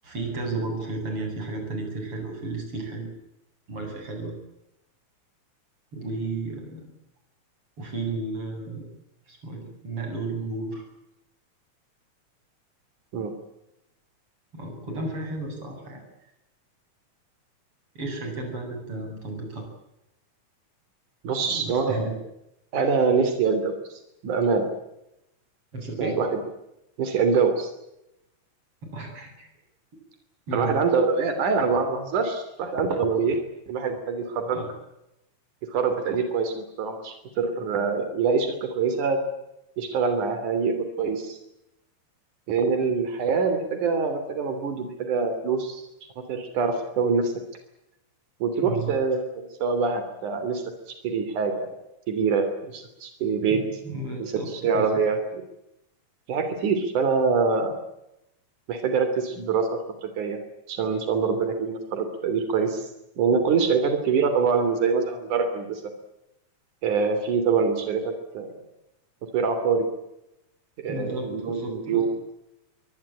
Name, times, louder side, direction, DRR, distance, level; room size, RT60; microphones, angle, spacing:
voice 1, 0.0-3.1 3.7-4.3 5.9-6.9 7.8-8.9 9.3-10.9 14.5-16.0 18.0-19.7 21.4-22.2 25.7-26.2 28.8-29.5 30.5-30.8 34.5-34.7 48.6-49.0 53.5-54.9 70.9-72.1, right 2 dB, 45° right, 3 dB, 9.1 m, -33 dB
voice 2, 21.2-22.1 22.7-23.7 24.2-24.6 26.0-26.3 27.0-27.7 30.5-33.4 33.7-34.6 35.7-39.2 39.8-41.4 42.5-45.8 46.3-47.3 48.4-50.6 51.0-51.7 52.1-53.6 54.2-55.4 56.3-57.7 58.7-60.4 60.7-62.9 63.2-65.8 66.8-68.5 69.3-69.9 70.8-72.1, right 5 dB, 80° right, 8 dB, 4.6 m, -24 dB
23.5 x 19.5 x 8.9 m, 0.86 s
omnidirectional pair, 3.5 m